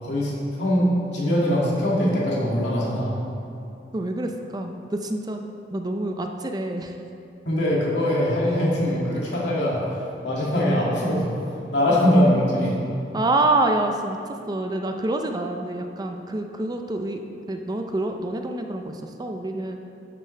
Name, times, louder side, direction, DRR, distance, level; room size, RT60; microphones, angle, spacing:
voice 1, 0.0-3.2 7.5-11.3 11.7-12.8, equal, 80° left, -5 dB, 2.3 m, -22 dB
voice 2, 3.9-5.4 5.7-6.9 11.9-12.0 13.1-14.2 14.5-17.2 17.5-19.8, right 2 dB, 20° right, 4 dB, 0.5 m, -26 dB
12.0 x 7.2 x 3.3 m, 2.7 s
head